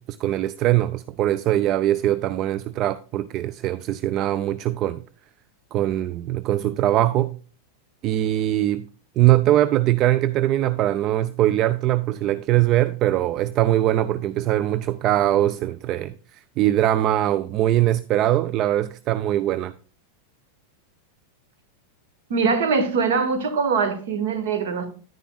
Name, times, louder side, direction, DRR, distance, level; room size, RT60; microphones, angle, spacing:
voice 1, 0.0-5.0 5.7-7.4 8.0-8.8 9.2-19.7, right 13 dB, 35° right, 0.3 m, -22 dB
voice 2, 22.3-24.9, right 5 dB, 55° right, 1.5 m, -22 dB
10.5 x 9.9 x 2.3 m
figure-of-eight pair, 90°, 0 cm